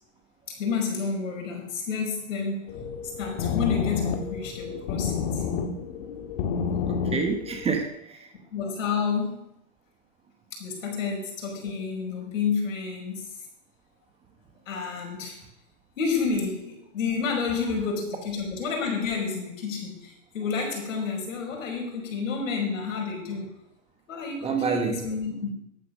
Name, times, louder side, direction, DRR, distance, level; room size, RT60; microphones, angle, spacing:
voice 1, 0.6-2.9 3.2-5.4 8.5-9.5 10.6-13.3 14.7-15.4 16.0-23.5 24.1-25.5, left 5 dB, 70° left, 1 dB, 5.2 m, -30 dB
sound 1, 2.7-7.9, left 6 dB, 45° left, 1.8 m, -30 dB
voice 2, 6.9-8.3 24.4-25.0, right 5 dB, 15° right, 5 dB, 1.1 m, -28 dB
11.5 x 8.5 x 6.4 m, 0.81 s
hypercardioid pair, 135°, 40 cm